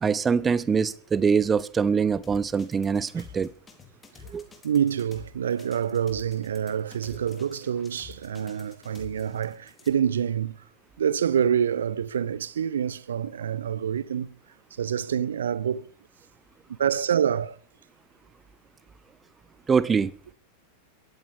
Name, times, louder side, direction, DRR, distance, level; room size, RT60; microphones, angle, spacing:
voice 1, 0.0-3.5 4.3-4.4 19.7-20.1, right 6 dB, 20° right, 0.8 m, -23 dB
sound 1, 2.2-9.9, left 5 dB, 15° left, 3.9 m, -49 dB
voice 2, 4.6-10.5 11.0-14.3 14.8-15.9 16.8-17.6, right 8 dB, 65° right, 0.9 m, -26 dB
22.5 x 14.5 x 3.6 m
figure-of-eight pair, 90°, 0 cm